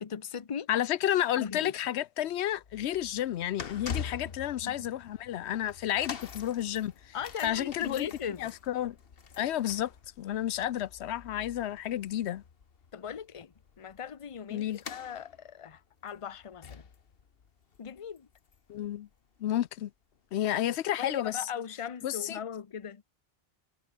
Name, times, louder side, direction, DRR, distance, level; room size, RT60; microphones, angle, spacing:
voice 1, 0.0-0.7 1.4-1.7 4.2-4.3 4.6-4.8 7.1-8.5 12.9-16.8 17.8-18.3 21.0-23.0, left 7 dB, 35° left, 0.8 m, -39 dB
voice 2, 0.7-7.1 7.4-8.1 8.4-9.0 9.4-12.4 14.5-14.8 18.7-19.1 19.4-19.9 20.3-21.4 22.0-22.4, left 12 dB, 85° left, 0.9 m, -31 dB
sound 1, 2.5-18.9 19.1-19.4 20.2-20.3, left 6 dB, 65° left, 1.4 m, -46 dB
omnidirectional pair, 1.1 m